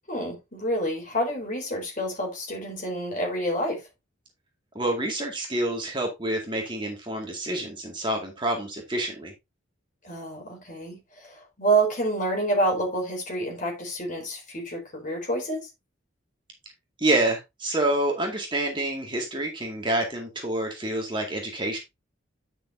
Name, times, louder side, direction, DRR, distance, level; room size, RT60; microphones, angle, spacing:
voice 1, 0.1-3.8 10.0-15.7, right 2 dB, 40° left, 4.4 m, -28 dB
voice 2, 4.7-9.3 17.0-21.8, right 1 dB, 25° right, 2.1 m, -27 dB
10.0 x 6.2 x 2.7 m
head